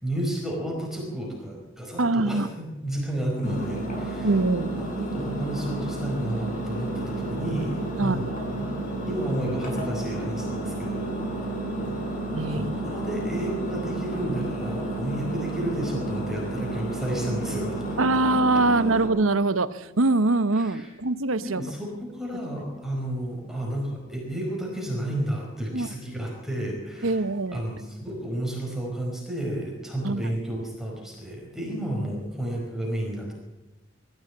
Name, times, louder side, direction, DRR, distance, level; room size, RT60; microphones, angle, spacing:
voice 1, 0.0-4.3 4.7-8.2 8.5-8.7 9.0-11.1 12.5-17.8 20.6-20.8 21.4-27.2 27.5-33.3, right 1 dB, ahead, -2 dB, 4.8 m, -31 dB
voice 2, 2.0-2.5 4.2-4.7 8.0-8.4 12.3-12.7 18.0-21.6 25.7-25.9 27.0-27.6 30.0-30.3, right 2 dB, 80° right, 14 dB, 1.0 m, -23 dB
Engine, 3.4-19.1, right 1 dB, 40° left, 7.2 m, -31 dB
21.0 x 14.5 x 8.6 m, 1.1 s
head